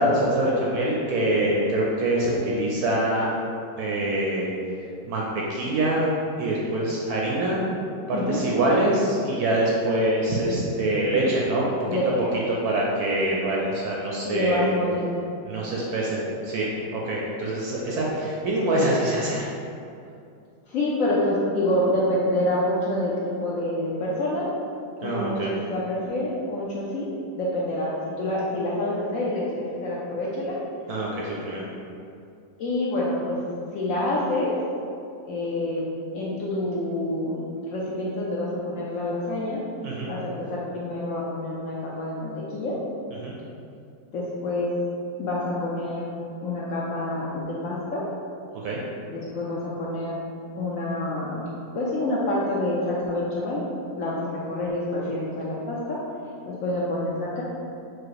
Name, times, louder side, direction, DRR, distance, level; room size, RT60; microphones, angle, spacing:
voice 1, 0.0-3.3 3.8-4.5 5.1-6.0 6.4-7.6 8.1-11.9 12.5-14.7 15.5-19.5 25.0-25.5 30.9-31.6 39.8-40.1 43.2-43.3 48.6-48.8, right 1 dB, 70° right, -4 dB, 0.9 m, -24 dB
voice 2, 8.1-8.5 11.9-12.0 14.2-15.2 20.7-24.5 25.0-27.1 27.3-30.6 32.6-33.4 33.7-34.6 35.2-35.8 36.1-37.4 37.7-39.6 40.1-42.8 44.1-44.7 45.2-46.1 46.4-48.1 49.1-50.2 50.6-51.5 51.7-53.7 54.0-56.0 56.5-57.4, left 1 dB, 70° left, -6 dB, 0.7 m, -27 dB
4.8 x 2.0 x 4.6 m, 2.5 s
omnidirectional pair, 2.0 m